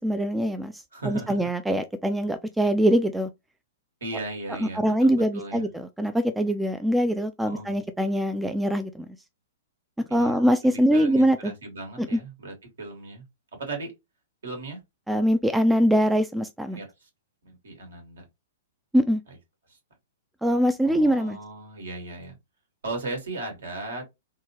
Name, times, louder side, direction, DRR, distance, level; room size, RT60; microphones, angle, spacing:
voice 1, 0.0-3.3 4.6-9.1 10.1-11.5 12.0-12.2 15.1-16.8 18.9-19.2 20.4-21.4, equal, 5° right, 0.3 m, -23 dB
voice 2, 0.9-1.4 4.0-5.7 7.4-7.8 10.1-13.2 13.6-13.9 14.4-14.8 16.7-17.1 17.4-18.2 19.7-19.8 20.8-22.3 22.8-24.0, right 2 dB, 65° right, 1.6 m, -37 dB
3.6 x 2.1 x 2.7 m
figure-of-eight pair, 110°, 0 cm